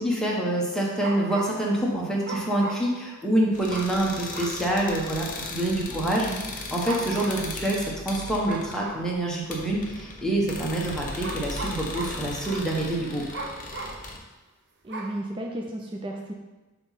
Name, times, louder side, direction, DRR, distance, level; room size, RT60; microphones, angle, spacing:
voice 1, 0.0-6.3 6.7-13.2, right 1 dB, 5° left, -4 dB, 1.1 m, -26 dB
sound 1, 0.7-1.7 2.2-3.2 3.7-4.0 4.3-4.7 5.3-5.4 6.7-7.5 8.4-9.1 9.9-10.0 11.2-12.7 13.3-14.1 14.9-15.2, right 3 dB, 50° right, 0.8 m, -37 dB
sound 2, 3.5-14.2, left 2 dB, 40° left, 1.0 m, -38 dB
voice 2, 5.9-6.6 14.8-16.3, right 1 dB, 25° right, 1 dB, 0.5 m, -34 dB
7.8 x 3.1 x 5.6 m, 1.1 s
head